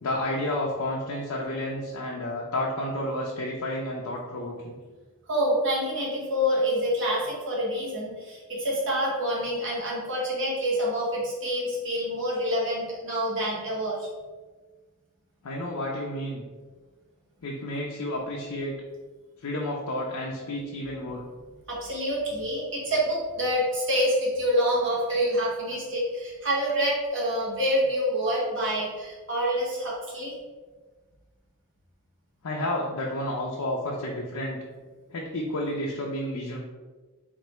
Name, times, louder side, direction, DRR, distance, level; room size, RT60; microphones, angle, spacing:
voice 1, 0.0-4.8 15.4-16.4 17.4-18.8 19.4-21.2 32.4-34.6 35.1-36.6, left 1 dB, 85° left, -2 dB, 0.5 m, -31 dB
voice 2, 5.3-14.1 21.7-30.3, equal, 60° right, -5 dB, 1.2 m, -27 dB
3.6 x 3.3 x 3.0 m, 1.4 s
head